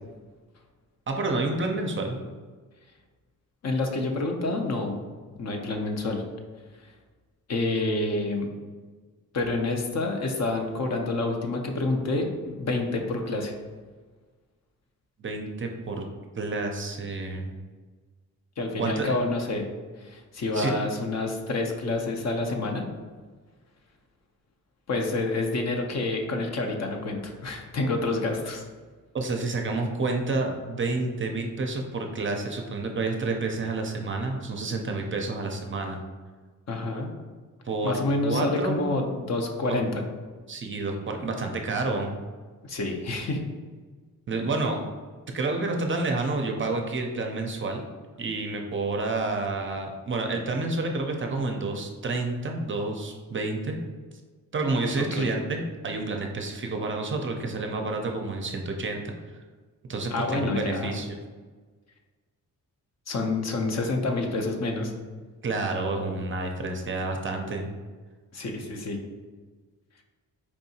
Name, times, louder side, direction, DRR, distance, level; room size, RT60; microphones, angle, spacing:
voice 1, 1.1-2.2 15.2-16.1 16.4-17.5 18.8-19.1 20.5-20.7 29.1-36.0 37.7-38.8 39.7-39.8 40.5-42.1 44.3-44.8 45.3-47.8 48.2-53.8 54.5-59.1 59.9-61.2 65.4-67.7, right 3 dB, 35° right, 3 dB, 0.5 m, -29 dB
voice 2, 3.6-5.0 5.4-6.2 7.5-8.5 9.3-13.5 18.6-19.6 20.0-22.8 24.9-28.6 36.7-37.1 37.8-40.0 42.7-43.4 55.0-55.3 60.1-60.9 63.1-64.9 68.3-69.0, left 2 dB, 50° left, 3 dB, 0.6 m, -28 dB
4.6 x 2.7 x 2.7 m, 1.4 s
cardioid pair, 85°, 35 cm